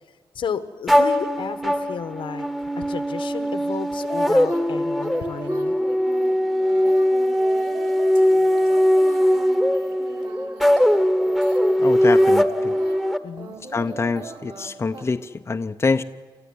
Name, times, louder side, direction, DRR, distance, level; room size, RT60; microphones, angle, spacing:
voice 1, 0.3-2.5 2.8-5.7 13.2-13.6, left 7 dB, 70° left, 12 dB, 1.3 m, -32 dB
sound 1, 0.9-13.2, equal, ahead, 1.1 m, -20 dB
sound 2, 4.0-15.0, right 4 dB, 60° right, 3.1 m, -39 dB
voice 2, 11.8-12.7 13.7-16.0, left 4 dB, 30° left, 7 dB, 0.7 m, -25 dB
29.5 x 13.5 x 9.6 m, 1.5 s
wide cardioid pair, 115°, 9 cm